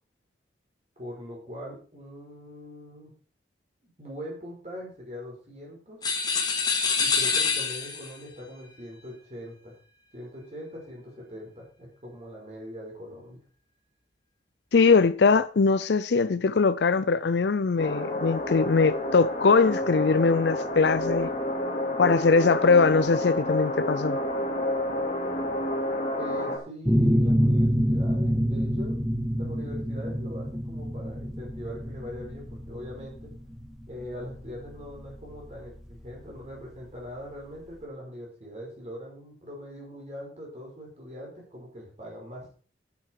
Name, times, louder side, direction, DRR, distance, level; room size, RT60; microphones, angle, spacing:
voice 1, 1.0-3.1 4.0-6.0 7.0-9.7 10.1-13.4 26.2-33.3 33.9-42.5, equal, 35° right, 5.6 m, -41 dB
sound 1, 6.0-8.2, left 5 dB, 20° left, 2.0 m, -26 dB
voice 2, 14.7-21.3 22.0-24.2, left 4 dB, 70° left, 0.5 m, -21 dB
sound 2, 17.8-26.6, left 1 dB, 40° left, 2.9 m, -29 dB
sound 3, 26.9-36.3, equal, ahead, 1.9 m, -26 dB
10.5 x 10.5 x 4.7 m
head